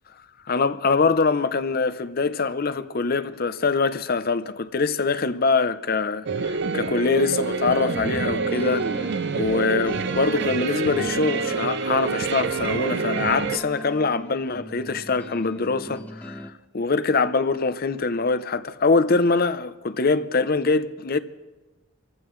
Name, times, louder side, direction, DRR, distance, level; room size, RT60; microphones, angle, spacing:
voice 1, 0.5-21.2, left 4 dB, 45° left, 0.6 m, -24 dB
sound 1, 6.3-13.6, right 5 dB, 55° right, 0.6 m, -27 dB
sound 2, 7.7-16.5, equal, 5° left, 0.8 m, -39 dB
27.5 x 15.0 x 3.2 m
head